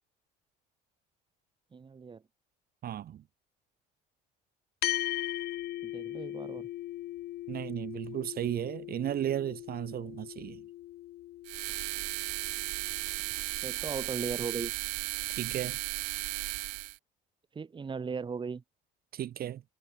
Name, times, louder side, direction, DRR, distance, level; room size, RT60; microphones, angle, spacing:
voice 1, 1.7-2.2 5.8-6.7 13.6-14.7 17.5-18.6, right 5 dB, 25° right, 1.2 m, -37 dB
voice 2, 2.8-3.2 7.5-10.6 15.3-15.8 19.1-19.6, right 11 dB, 50° right, 1.1 m, -35 dB
sound 1, 4.8-13.5, left 14 dB, 60° left, 0.6 m, -39 dB
sound 2, 11.4-17.0, right 32 dB, 85° right, 1.2 m, -35 dB
supercardioid pair, 90°, 19 cm